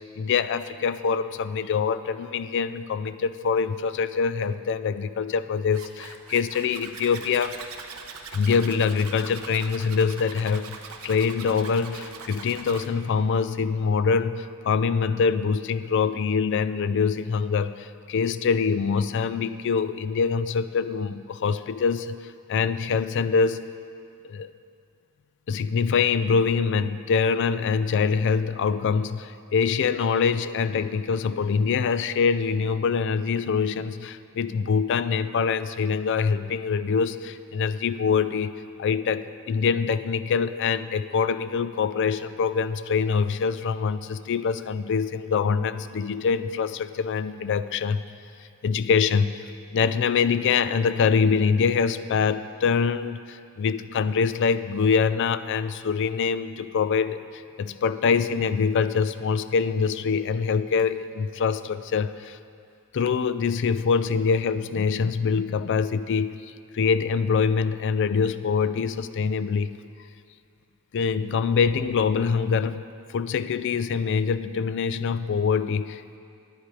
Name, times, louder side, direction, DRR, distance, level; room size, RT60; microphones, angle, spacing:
voice 1, 0.2-7.6 8.3-10.8 11.0-22.1 22.5-23.6 24.3-24.5 25.5-48.0 48.6-49.4 49.7-62.4 62.9-66.4 66.7-69.8 70.9-72.8 73.1-76.2, left 5 dB, 60° left, 13 dB, 0.4 m, -24 dB
Zipper (clothing), 5.7-12.9, right 5 dB, 85° right, 0.9 m, -41 dB
10.5 x 9.8 x 4.8 m, 2.4 s
head